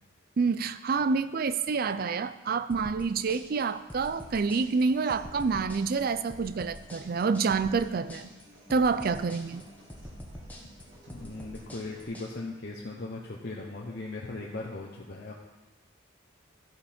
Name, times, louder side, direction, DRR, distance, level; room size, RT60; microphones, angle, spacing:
voice 1, 0.4-8.3 8.7-9.7, right 4 dB, 50° right, 13 dB, 0.4 m, -28 dB
sound 1, 2.7-12.3, equal, 10° left, 1.2 m, -46 dB
Human voice / Acoustic guitar, 4.1-12.1, right 1 dB, 65° right, 3.8 m, -55 dB
voice 2, 11.1-15.3, left 2 dB, 55° left, -3 dB, 0.9 m, -38 dB
14.0 x 5.6 x 4.3 m, 1.1 s
head